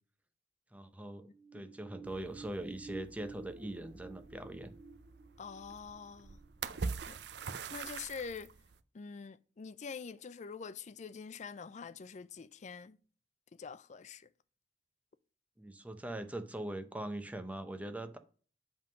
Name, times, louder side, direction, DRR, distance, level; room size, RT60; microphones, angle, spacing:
voice 1, 0.7-1.2 1.5-4.7 15.6-18.2, right 1 dB, 10° right, 0.7 m, -41 dB
sound 1, 1.2-7.5 7.9-8.0, right 4 dB, 40° right, 1.8 m, -52 dB
sound 2, 2.0-8.8, right 5 dB, 70° right, 0.5 m, -44 dB
voice 2, 5.4-6.4 7.1-7.2 7.7-8.5 8.9-13.0 13.5-14.3, left 5 dB, 45° left, 0.4 m, -45 dB
7.9 x 3.7 x 5.1 m
head